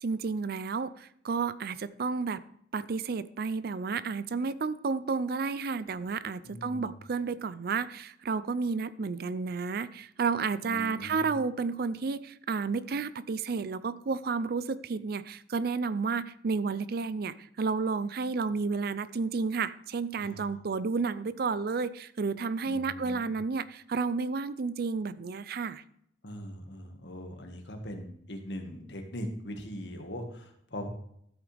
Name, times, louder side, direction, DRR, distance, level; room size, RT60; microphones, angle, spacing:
voice 1, 0.0-2.4 2.7-25.8, right 4 dB, 55° right, 16 dB, 0.5 m, -31 dB
voice 2, 6.4-6.9 10.6-11.3 20.2-20.6 22.6-23.3 26.2-30.9, equal, 70° left, 4 dB, 1.8 m, -41 dB
13.0 x 8.1 x 3.4 m, 0.72 s
head